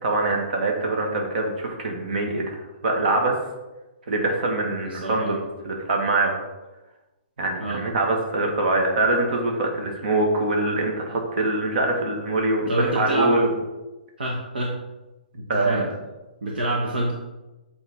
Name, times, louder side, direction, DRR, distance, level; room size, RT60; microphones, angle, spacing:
voice 1, 0.0-2.6 2.8-3.4 4.1-6.4 7.4-13.5 15.5-15.8, right 2 dB, 60° right, 2 dB, 1.8 m, -23 dB
voice 2, 4.8-5.4 7.6-7.8 12.7-13.4 14.2-14.8 15.3-15.9 16.4-17.1, right 1 dB, 75° right, -2 dB, 1.2 m, -27 dB
7.9 x 4.3 x 3.7 m, 1.1 s
hypercardioid pair, 135°, 5 cm